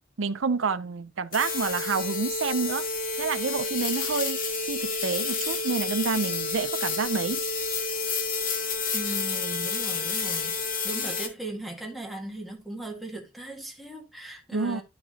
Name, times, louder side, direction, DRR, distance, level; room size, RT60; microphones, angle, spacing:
voice 1, 0.2-2.8 3.2-7.4 14.5-14.8, right 5 dB, 85° right, 0.6 m, -29 dB
sound 1, 1.3-11.3, left 4 dB, 45° left, 1.4 m, -29 dB
voice 2, 8.9-10.6 10.8-14.8, right 2 dB, ahead, 1.7 m, -38 dB
10.5 x 6.0 x 2.8 m
head